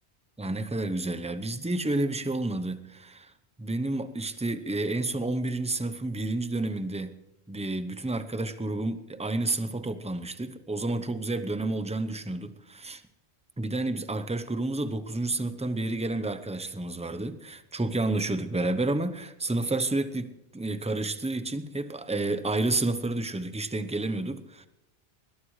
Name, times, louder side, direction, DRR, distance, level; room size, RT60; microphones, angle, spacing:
voice 1, 0.4-3.3 3.6-7.1 7.5-13.0 13.6-24.7, right 2 dB, 5° right, 11 dB, 0.7 m, -30 dB
20.5 x 20.5 x 3.2 m, 0.93 s
omnidirectional pair, 1.1 m